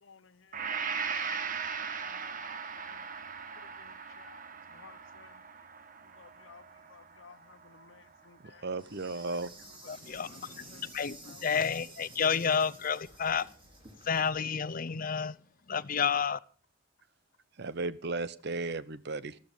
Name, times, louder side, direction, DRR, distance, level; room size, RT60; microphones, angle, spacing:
voice 1, 0.0-3.0 3.6-4.4 4.7-5.4 6.0-8.7 9.7-10.4 10.7-10.9 11.2-11.4, left 5 dB, 75° left, 0.8 m, -58 dB
Gong, 0.5-8.6, right 6 dB, 45° right, 1.3 m, -39 dB
voice 2, 8.4-9.5 17.6-19.4, right 3 dB, 60° right, 0.9 m, -35 dB
Insect, 8.8-14.3, right 2 dB, 25° right, 3.7 m, -52 dB
voice 3, 9.9-13.5 14.0-15.4 15.7-16.4, left 6 dB, 45° left, 0.6 m, -30 dB
13.5 x 13.0 x 5.2 m
head